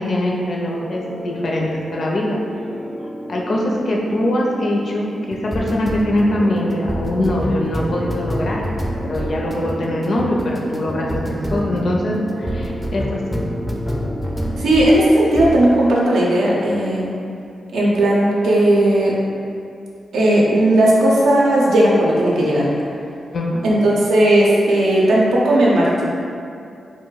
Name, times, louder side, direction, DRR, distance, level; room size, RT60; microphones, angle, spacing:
voice 1, 0.0-2.4 3.0-8.6 9.0-13.9 23.3-23.6, left 1 dB, 65° left, -2 dB, 0.5 m, -22 dB
sound 1, 0.7-15.0 15.3-15.6, equal, ahead, 0.4 m, -28 dB
voice 2, 14.6-17.1 17.7-19.2 20.1-22.7 23.6-26.1, right 1 dB, 85° right, -5 dB, 0.5 m, -15 dB
2.3 x 2.1 x 3.8 m, 2.5 s
supercardioid pair, 50°, 0 cm